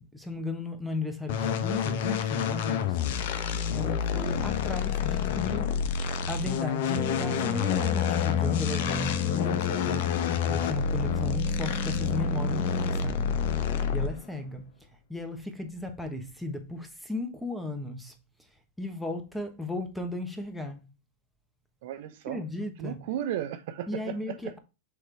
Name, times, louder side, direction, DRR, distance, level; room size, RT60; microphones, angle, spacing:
voice 1, 0.0-3.0 3.7-5.7 6.3-13.4 13.9-14.7 15.1-18.1 18.8-20.9 22.3-23.1 23.9-24.6, left 2 dB, ahead, 1.2 m, -35 dB
sound 1, 1.3-14.3, left 7 dB, 60° left, 0.8 m, -28 dB
sound 2, 6.9-13.6, left 6 dB, 25° left, 1.0 m, -35 dB
voice 2, 21.8-22.4 22.8-24.4, right 11 dB, 60° right, 0.6 m, -35 dB
6.5 x 3.3 x 4.6 m
hypercardioid pair, 115°, 0 cm